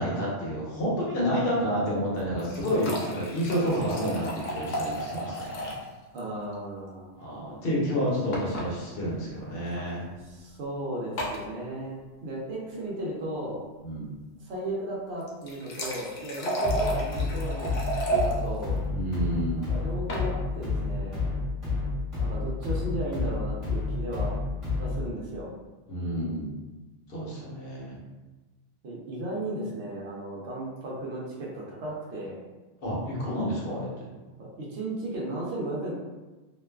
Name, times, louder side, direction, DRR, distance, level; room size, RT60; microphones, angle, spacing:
voice 1, 0.0-5.8 7.2-10.0 13.8-14.1 18.9-19.6 25.9-26.5 27.1-28.0 32.8-33.9, equal, 55° left, -6 dB, 0.9 m, -29 dB
sound 1, 2.2-5.9 6.2-6.3 6.5-6.6 8.3-8.7 9.6-9.8 11.2-11.4 15.2-18.3 19.8-20.3, right 1 dB, 85° left, 0.9 m, -32 dB
voice 2, 6.1-7.1 10.0-13.6 14.4-18.8 19.7-21.3 22.2-24.4 24.8-25.5 28.8-32.5 33.6-33.7 34.4-35.9, right 1 dB, 70° right, -4 dB, 0.9 m, -35 dB
sound 2, 16.6-25.1, left 3 dB, 25° right, 1.2 m, -30 dB
2.5 x 2.2 x 2.2 m, 1.2 s
omnidirectional pair, 1.3 m